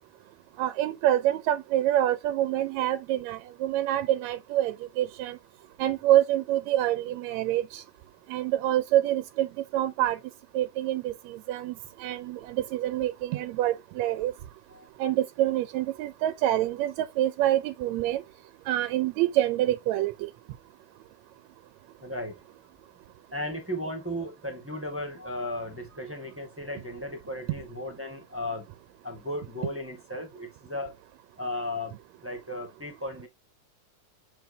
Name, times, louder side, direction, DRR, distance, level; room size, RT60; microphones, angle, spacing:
voice 1, 0.6-5.4 5.8-7.8 8.3-9.5 9.7-10.2 10.5-11.7 12.0-14.3 15.0-18.2 18.7-20.3, right 13 dB, 80° right, 1.7 m, -26 dB
voice 2, 22.0-22.4 23.3-28.7 29.0-30.9 31.4-31.9 32.2-33.3, left 1 dB, 5° right, 1.0 m, -35 dB
7.4 x 4.7 x 2.7 m
omnidirectional pair, 3.5 m